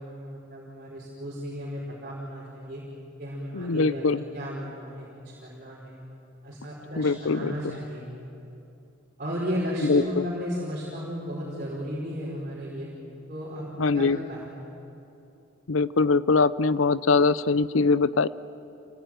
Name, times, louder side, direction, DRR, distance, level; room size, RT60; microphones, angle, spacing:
voice 1, 0.0-2.8 3.2-4.0 4.3-6.0 6.4-8.0 9.2-12.9 13.3-13.7 13.9-14.6, equal, 40° right, -6 dB, 5.1 m, -34 dB
voice 2, 3.5-4.2 7.0-7.5 9.8-10.2 13.8-14.2 15.7-18.3, left 4 dB, 85° left, 17 dB, 0.7 m, -22 dB
28.0 x 20.0 x 9.2 m, 2.8 s
head